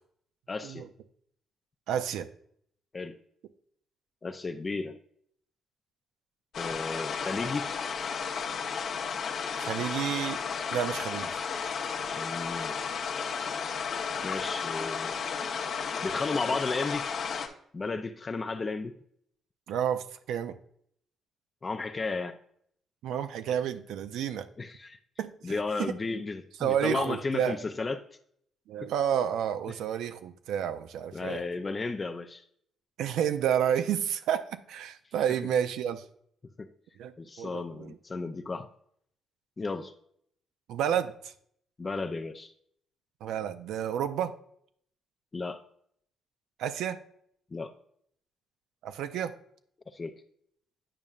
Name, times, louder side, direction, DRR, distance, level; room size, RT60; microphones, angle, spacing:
voice 1, 0.5-0.9 2.9-3.2 4.2-5.0 6.6-7.7 12.2-12.8 14.2-15.2 16.0-17.1 17.7-18.9 21.6-22.4 24.6-25.0 25.4-28.0 31.1-32.4 36.6-36.7 37.2-38.7 39.6-39.9 41.8-42.5 45.3-45.6 47.5-47.7 49.9-50.2, left 3 dB, 30° left, 7 dB, 0.4 m, -33 dB
voice 2, 1.9-2.3 9.6-10.4 10.7-11.4 16.5-16.6 19.7-20.6 23.0-24.5 25.2-25.9 26.6-27.6 28.7-31.4 33.0-36.0 37.0-37.1 37.4-38.0 40.7-41.3 43.2-44.3 46.6-47.0 48.8-49.3, right 9 dB, 85° right, 10 dB, 0.4 m, -30 dB
sound 1, 6.5-17.5, left 6 dB, 65° left, 0.8 m, -33 dB
8.8 x 5.3 x 2.4 m, 0.66 s
cardioid pair, 90°, 0 cm